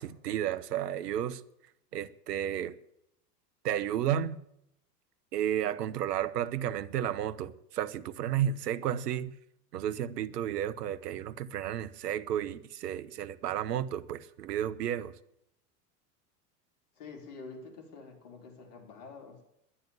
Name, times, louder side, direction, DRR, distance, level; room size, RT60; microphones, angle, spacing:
voice 1, 0.0-1.4 1.9-2.7 3.6-4.4 5.3-9.3 9.7-15.1, right 10 dB, 80° right, 0.9 m, -32 dB
voice 2, 17.0-19.4, left 4 dB, 60° left, 4.1 m, -47 dB
11.0 x 10.5 x 7.4 m
hypercardioid pair, 90°, 47 cm